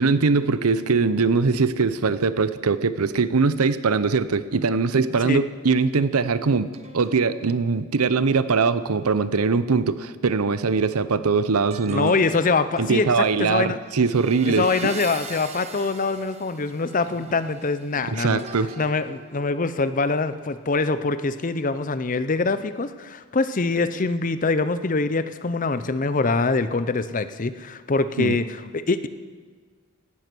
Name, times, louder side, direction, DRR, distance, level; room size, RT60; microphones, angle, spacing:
voice 1, 0.0-12.1 12.8-14.9 18.0-18.7 28.2-28.4, right 4 dB, 85° right, 14 dB, 0.7 m, -22 dB
sound 1, 6.7-10.4 11.7-20.2 20.6-20.9, right 4 dB, 30° right, 1.0 m, -43 dB
voice 2, 11.9-13.8 14.5-18.4 18.8-29.1, left 3 dB, 35° left, 12 dB, 0.6 m, -24 dB
17.0 x 12.0 x 6.2 m, 1.5 s
head